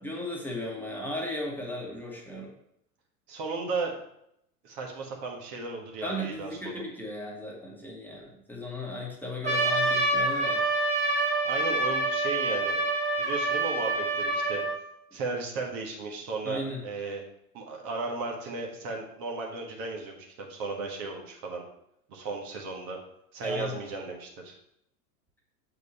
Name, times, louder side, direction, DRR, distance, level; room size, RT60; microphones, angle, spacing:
voice 1, 0.0-2.5 6.0-10.6 16.4-16.8 23.4-23.8, left 1 dB, 5° left, -3 dB, 1.5 m, -36 dB
voice 2, 3.3-4.0 4.6-6.5 11.4-12.8 13.2-14.6 15.1-17.2 17.5-21.6 22.1-23.0 23.3-24.5, right 3 dB, 50° right, 0 dB, 1.7 m, -35 dB
Trumpet, 9.4-14.8, right 2 dB, 15° right, 1.7 m, -27 dB
6.9 x 4.7 x 4.2 m, 0.77 s
hypercardioid pair, 90°, 46 cm